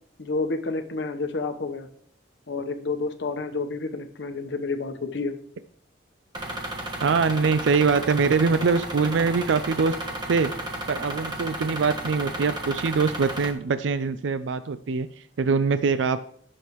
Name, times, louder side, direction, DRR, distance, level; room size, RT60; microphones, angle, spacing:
voice 1, 0.2-1.9 2.5-5.3, left 3 dB, 70° left, 8 dB, 1.0 m, -29 dB
sound 1, 6.3-13.5, right 1 dB, 25° right, 1.4 m, -33 dB
voice 2, 7.0-10.0 10.3-10.5 10.9-16.2, right 5 dB, 75° right, 12 dB, 0.4 m, -23 dB
16.0 x 6.6 x 3.0 m, 0.62 s
head